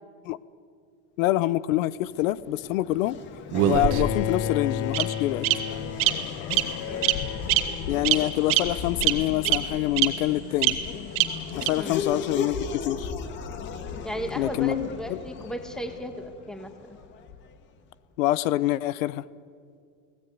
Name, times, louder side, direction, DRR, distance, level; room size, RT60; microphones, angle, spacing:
voice 1, 1.2-3.2 3.7-5.5 7.9-10.8 11.6-13.1 14.4-15.2 18.2-19.2, left 15 dB, 90° left, 19 dB, 1.0 m, -26 dB
Race car auto racing / Accelerating revving vroom, 2.0-17.6, left 6 dB, 30° left, 1.6 m, -37 dB
Bowed string instrument, 3.5-9.6, left 9 dB, 55° left, 1.2 m, -34 dB
Bird vocalization bird call bird song, 3.5-4.3 4.9-5.0 5.4-5.5 6.0-6.1 6.5-6.6 7.0-7.2 7.5-7.6 8.0-8.2 8.5-8.6 9.0-9.1 9.4-9.6 10.0-10.1 10.6-10.7 11.2-11.3 11.6-11.7, right 14 dB, 35° right, 1.8 m, -21 dB
voice 2, 11.8-12.1 14.0-17.0, equal, ahead, 7 dB, 1.4 m, -35 dB
30.0 x 19.0 x 9.5 m, 2.2 s
supercardioid pair, 180°, 39 cm